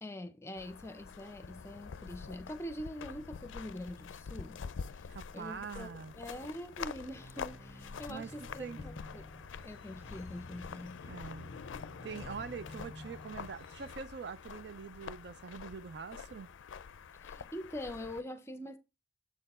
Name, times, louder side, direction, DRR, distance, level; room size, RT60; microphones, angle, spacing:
voice 1, 0.0-4.6 5.3-9.3 9.6-11.0 17.2-18.8, left 1 dB, 15° left, 0.6 m, -44 dB
sound 1, 0.6-18.2, left 6 dB, 90° left, 0.4 m, -46 dB
voice 2, 5.1-6.1 8.1-8.3 8.6-8.8 11.1-11.5 12.0-16.5, right 5 dB, 65° right, 0.4 m, -44 dB
sound 2, 7.1-13.9, equal, 15° right, 1.9 m, -53 dB
7.2 x 4.5 x 4.2 m
head